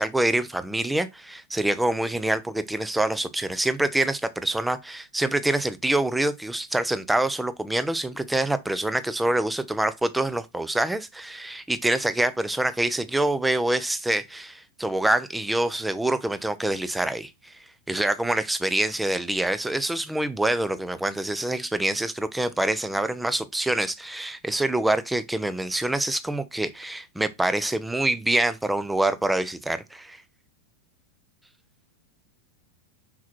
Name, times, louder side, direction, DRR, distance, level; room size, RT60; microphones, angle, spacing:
voice 1, 0.0-30.2, right 1 dB, 5° right, 0.8 m, -26 dB
6.0 x 5.9 x 4.4 m
figure-of-eight pair, 90°, 0 cm